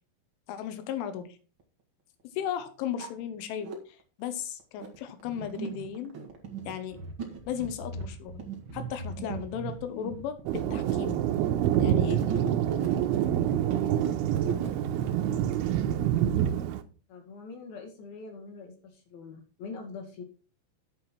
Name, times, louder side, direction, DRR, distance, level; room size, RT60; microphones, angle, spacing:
voice 1, 0.5-1.3 2.4-3.7 4.2-6.2 6.7-7.0 7.5-8.4 8.7-11.2 11.8-12.2, left 9 dB, 85° left, 9 dB, 3.7 m, -35 dB
sound 1, 1.6-1.7 2.4-2.5 2.8-3.8 4.4-15.3, right 5 dB, 55° right, 1.3 m, -38 dB
Thunder, 10.5-16.8, right 11 dB, 90° right, 3.3 m, -27 dB
voice 2, 17.1-20.2, left 4 dB, 60° left, 2 dB, 3.5 m, -43 dB
9.9 x 7.8 x 4.4 m, 0.36 s
omnidirectional pair, 5.5 m